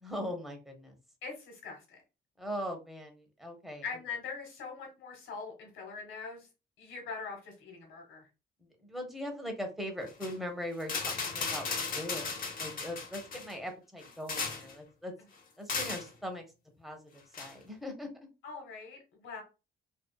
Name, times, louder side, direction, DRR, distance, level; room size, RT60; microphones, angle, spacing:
voice 1, 0.0-1.0 2.4-3.8 8.6-11.7 11.9-12.3 12.6-15.1 15.6-16.4 16.8-18.1, equal, ahead, 3 dB, 0.8 m, -40 dB
voice 2, 1.2-2.0 3.8-6.5 6.8-8.3 18.4-19.4, left 5 dB, 85° left, 2 dB, 1.1 m, -42 dB
sound 1, 10.1-10.3 10.8-13.5 14.0-14.7 15.7-16.1 17.3-17.5, left 4 dB, 45° left, 0.7 m, -36 dB
2.5 x 2.3 x 2.2 m, 0.29 s
cardioid pair, 90°, 20 cm